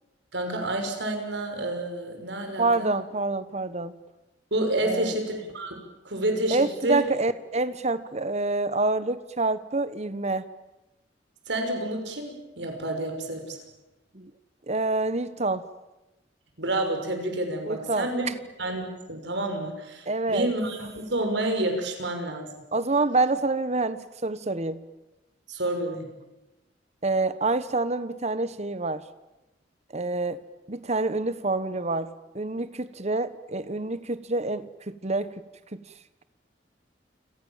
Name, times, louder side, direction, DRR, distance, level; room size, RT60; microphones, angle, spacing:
voice 1, 0.3-2.9 4.5-5.8 6.0-7.0 11.5-13.6 16.6-18.3 18.6-22.5 25.5-26.1, right 1 dB, 70° right, 5 dB, 6.1 m, -29 dB
voice 2, 2.6-3.9 4.8-5.1 6.5-10.4 14.1-14.3 14.7-15.6 17.6-18.1 20.1-20.5 22.7-24.8 27.0-29.0 29.9-30.4 30.7-35.3 35.7-35.8, right 3 dB, 35° right, 14 dB, 1.2 m, -27 dB
29.5 x 26.0 x 7.4 m, 1.0 s
head